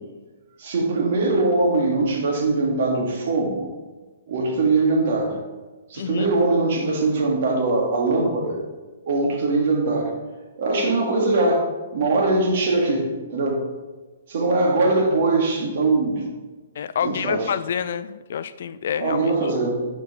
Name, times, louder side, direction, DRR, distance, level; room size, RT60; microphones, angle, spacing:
voice 1, 0.6-3.7 4.3-5.4 5.9-8.6 9.1-10.1 10.6-11.7 11.9-13.6 14.3-16.3 17.0-17.5 19.0-19.9, right 3 dB, 55° right, 0 dB, 1.7 m, -21 dB
voice 2, 6.0-6.3 16.8-19.5, left 8 dB, 65° left, 14 dB, 0.3 m, -28 dB
9.4 x 5.2 x 3.5 m, 1.2 s
hypercardioid pair, 155°, 0 cm